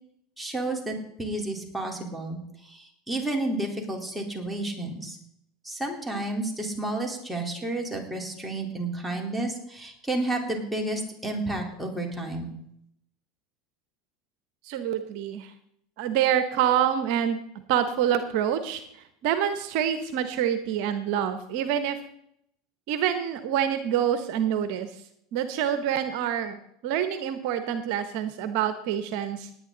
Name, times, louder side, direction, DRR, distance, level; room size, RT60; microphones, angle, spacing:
voice 1, 0.4-5.2 5.6-12.5, right 2 dB, 5° right, 0 dB, 3.9 m, -31 dB
voice 2, 14.7-15.5 16.0-17.4 17.7-18.8 19.2-22.0 22.9-24.9 25.3-29.5, right 9 dB, 65° right, 10 dB, 1.1 m, -26 dB
18.5 x 9.6 x 4.0 m, 0.73 s
hypercardioid pair, 85°, 0 cm